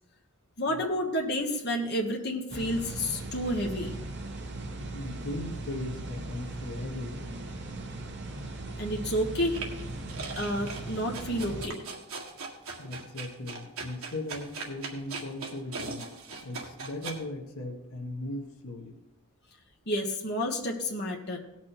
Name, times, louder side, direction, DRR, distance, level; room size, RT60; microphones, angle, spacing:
voice 1, 0.6-3.9 8.8-9.7 10.3-11.8 19.9-21.4, equal, 50° left, 0 dB, 1.4 m, -30 dB
sound 1, 2.5-11.7, right 2 dB, 50° right, 1.2 m, -38 dB
voice 2, 4.9-7.4 12.8-16.0 16.4-18.9, left 1 dB, 75° left, 3 dB, 1.4 m, -38 dB
sound 2, 9.5-17.2, right 4 dB, 70° right, 1.8 m, -40 dB
17.5 x 6.1 x 4.4 m, 0.92 s
head